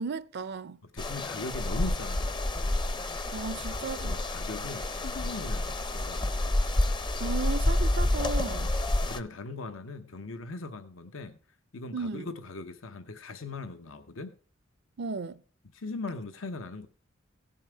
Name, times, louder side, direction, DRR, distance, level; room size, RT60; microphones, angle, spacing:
voice 1, 0.0-0.8 3.3-4.2 7.2-8.7 11.9-12.3 15.0-15.4, right 4 dB, 55° right, 0.5 m, -35 dB
voice 2, 0.9-2.5 4.0-6.3 8.5-8.7 9.1-11.4 11.7-14.3 15.7-16.9, left 3 dB, 85° left, 0.9 m, -39 dB
sound 1, 1.0-9.2, left 1 dB, 25° left, 0.6 m, -29 dB
16.5 x 5.7 x 4.5 m
head